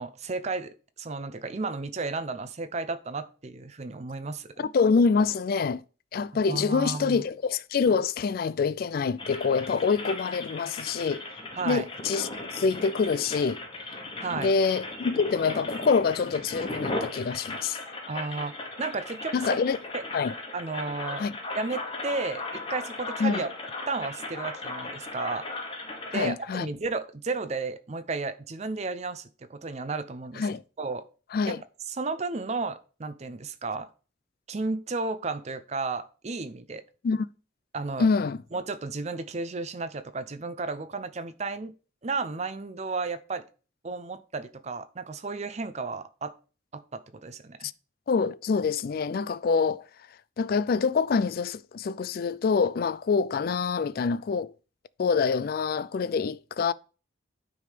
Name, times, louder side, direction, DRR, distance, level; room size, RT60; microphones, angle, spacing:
voice 1, 0.0-4.7 6.5-7.2 11.5-11.9 14.2-14.5 18.1-19.4 19.9-20.0 20.5-21.2 21.5-23.5 23.9-25.5 26.1-30.5 30.8-31.0 31.5-31.6 31.9-33.9 34.5-36.8 37.7-38.1 38.5-41.7 42.0-43.4 43.8-46.3 46.7-47.7, right 3 dB, 35° right, 0.6 m, -33 dB
voice 2, 4.6-5.8 6.1-11.2 11.7-13.6 14.3-17.8 19.3-19.8 20.1-20.3 21.2-21.3 23.2-23.4 26.1-26.7 30.4-30.6 31.3-31.6 37.0-37.3 38.0-38.4 48.1-49.8 50.4-54.5 55.0-56.7, left 5 dB, 50° left, 0.3 m, -26 dB
sound 1, 9.2-26.3, left 2 dB, 30° left, 1.3 m, -37 dB
9.4 x 3.6 x 5.0 m
head